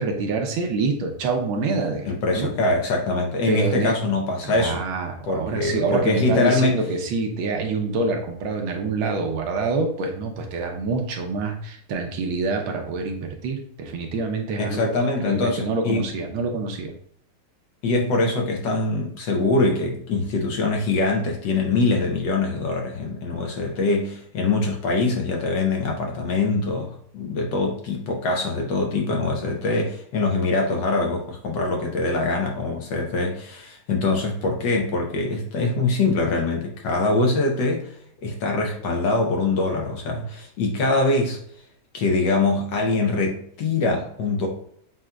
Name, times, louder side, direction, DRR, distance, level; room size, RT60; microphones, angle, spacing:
voice 1, 0.0-2.5 3.5-3.9 4.4-14.9 15.2-16.9, right 3 dB, 75° right, 3 dB, 1.5 m, -26 dB
voice 2, 2.0-4.8 5.3-6.8 14.6-16.1 17.8-37.9 38.2-41.4 41.9-44.5, left 3 dB, 65° left, 1 dB, 1.4 m, -23 dB
7.3 x 2.8 x 2.3 m, 0.64 s
omnidirectional pair, 2.3 m